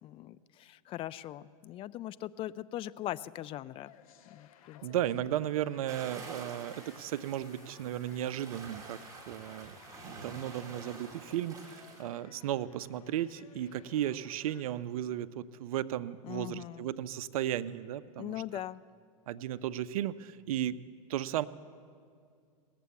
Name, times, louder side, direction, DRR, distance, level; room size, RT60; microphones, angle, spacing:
voice 1, 0.0-3.9 4.3-4.8 16.2-16.9 18.2-18.8, left 13 dB, 30° left, 17 dB, 0.3 m, -40 dB
sound 1, 3.8-14.7, left 9 dB, 65° left, 0.8 m, -58 dB
voice 2, 4.8-9.8 10.0-18.6 19.3-20.8 21.1-21.5, right 11 dB, 70° right, 14 dB, 0.5 m, -35 dB
sound 2, 5.9-12.0, right 3 dB, 20° right, 2.5 m, -49 dB
18.5 x 7.5 x 7.0 m, 2.2 s
hypercardioid pair, 100°, 19 cm